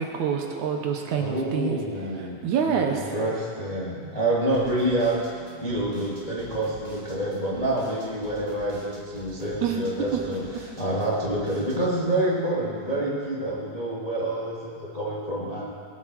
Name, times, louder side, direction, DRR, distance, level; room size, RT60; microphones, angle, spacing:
voice 1, 0.0-1.8 2.2-3.1 9.6-9.9 10.1-10.2, right 7 dB, 70° right, 2 dB, 2.3 m, -26 dB
voice 2, 1.2-2.4 2.7-5.2 5.6-10.4 10.8-15.7, right 1 dB, 15° left, -6 dB, 1.5 m, -27 dB
sound 1, 4.5-11.8, right 1 dB, 20° right, 1.9 m, -46 dB
20.0 x 8.3 x 6.3 m, 2.3 s
omnidirectional pair, 3.7 m